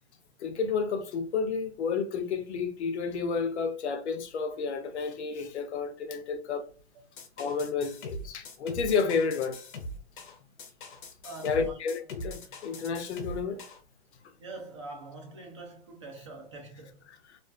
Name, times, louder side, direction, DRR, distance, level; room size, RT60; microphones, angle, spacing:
voice 1, 0.4-6.6 7.4-9.6 11.4-13.6 17.1-17.4, left 5 dB, 90° left, 0.6 m, -31 dB
sound 1, 7.2-13.8, left 1 dB, 50° left, 0.6 m, -41 dB
voice 2, 11.2-11.8 14.4-17.1, right 2 dB, 30° right, 0.4 m, -44 dB
2.4 x 2.4 x 2.3 m
hypercardioid pair, 165°, 33 cm